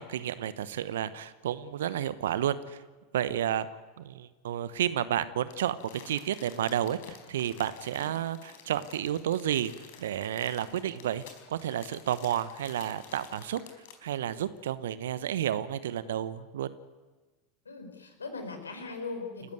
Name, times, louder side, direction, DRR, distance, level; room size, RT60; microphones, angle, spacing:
voice 1, 0.0-2.8 3.1-3.7 4.0-5.8 6.1-9.7 10.0-13.6 14.0-16.7, right 10 dB, 70° right, 15 dB, 1.0 m, -31 dB
Crumpling crinkling, 5.5-14.1 14.6-14.7, left 7 dB, 60° left, 4.5 m, -51 dB
voice 2, 17.6-19.5, left 3 dB, 80° left, 5 dB, 4.9 m, -39 dB
29.0 x 14.0 x 9.5 m, 1.3 s
figure-of-eight pair, 80°, 0 cm